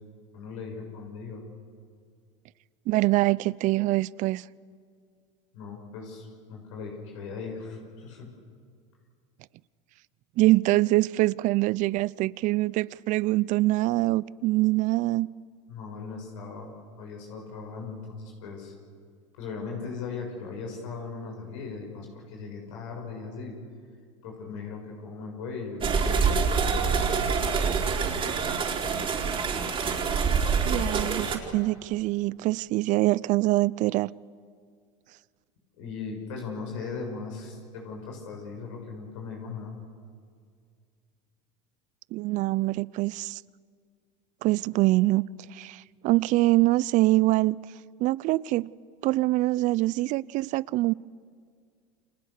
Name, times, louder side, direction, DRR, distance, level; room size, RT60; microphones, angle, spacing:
voice 1, 0.3-1.4 5.5-8.3 15.7-18.7 19.4-23.6 24.2-27.3 27.8-28.1 35.7-39.8, left 4 dB, 75° left, 6.8 m, -38 dB
voice 2, 2.9-4.4 10.4-15.3 30.6-34.1 42.1-43.4 44.4-45.2 45.5-47.6 48.0-48.7 49.0-50.9, right 19 dB, 50° right, 0.6 m, -24 dB
sound 1, 25.8-31.4, right 5 dB, 35° right, 4.3 m, -26 dB
29.5 x 26.5 x 6.7 m
hypercardioid pair, 100°, 16 cm